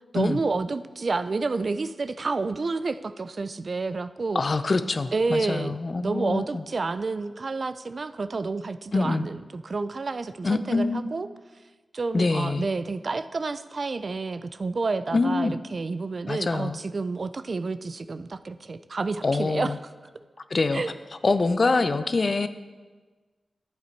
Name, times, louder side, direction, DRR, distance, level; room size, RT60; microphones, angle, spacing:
voice 1, 0.1-4.4 5.1-11.3 11.9-19.7 20.7-20.9, right 3 dB, 60° right, 12 dB, 0.4 m, -29 dB
voice 2, 4.3-6.6 8.9-9.3 10.4-11.1 12.1-12.7 15.1-15.6 16.2-16.8 19.2-19.8 20.5-20.8 21.2-22.5, left 3 dB, 55° left, 11 dB, 0.6 m, -25 dB
11.5 x 7.4 x 4.5 m, 1.3 s
cardioid pair, 45°, 0 cm